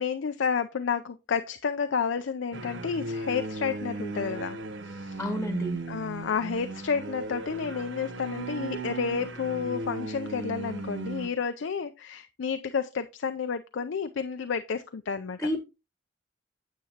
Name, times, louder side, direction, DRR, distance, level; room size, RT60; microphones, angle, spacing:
voice 1, 0.0-4.6 4.8-5.3 5.9-15.4, left 6 dB, 70° left, 0.4 m, -31 dB
sound 1, 2.5-11.3, right 2 dB, 70° right, 0.8 m, -36 dB
voice 2, 5.2-5.8 15.4-15.6, equal, 5° left, 1.0 m, -30 dB
9.3 x 7.6 x 2.8 m
head